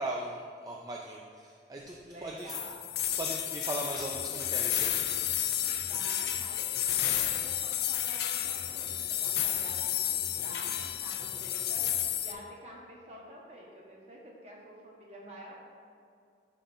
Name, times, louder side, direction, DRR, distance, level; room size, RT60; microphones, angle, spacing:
voice 1, 0.0-2.0 2.2-2.6 3.2-5.0, right 1 dB, 20° right, -1 dB, 0.4 m, -38 dB
voice 2, 2.0-2.8 5.8-11.8 12.2-15.6, equal, 35° right, -3 dB, 1.2 m, -49 dB
sound 1, 2.5-12.3, left 12 dB, 60° left, 0.4 m, -31 dB
sound 2, 4.0-7.8 8.4-12.3, equal, 15° left, 1.0 m, -51 dB
10.5 x 5.4 x 2.6 m, 2.4 s
head